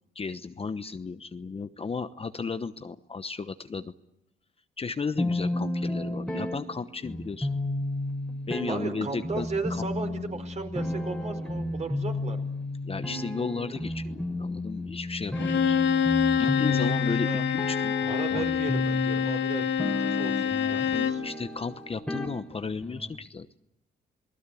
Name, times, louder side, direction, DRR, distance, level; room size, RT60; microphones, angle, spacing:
voice 1, 0.1-3.9 4.8-7.5 8.5-9.8 12.8-15.8 16.4-17.9 18.3-18.5 21.2-23.5, left 4 dB, 30° left, 10 dB, 1.0 m, -34 dB
sound 1, 5.2-23.2, left 1 dB, 5° left, 3.2 m, -32 dB
voice 2, 8.7-12.5 16.3-17.4 18.0-21.2, right 4 dB, 35° right, 6 dB, 4.8 m, -36 dB
Bowed string instrument, 15.4-21.3, left 8 dB, 60° left, 1.5 m, -26 dB
28.0 x 19.5 x 8.5 m, 0.84 s
cardioid pair, 90°, 20 cm